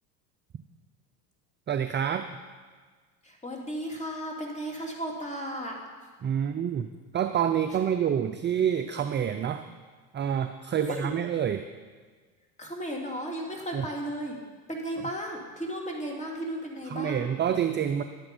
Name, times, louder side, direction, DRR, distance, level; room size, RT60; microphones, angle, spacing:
voice 1, 1.7-2.3 6.2-9.7 10.1-11.6 13.7-13.9 16.9-18.0, right 9 dB, 25° right, 8 dB, 0.5 m, -27 dB
voice 2, 3.2-5.8 10.8-11.1 12.6-14.4 14.7-17.2, equal, 15° left, 0 dB, 2.7 m, -34 dB
11.0 x 8.8 x 5.4 m, 1.5 s
hypercardioid pair, 85°, 46 cm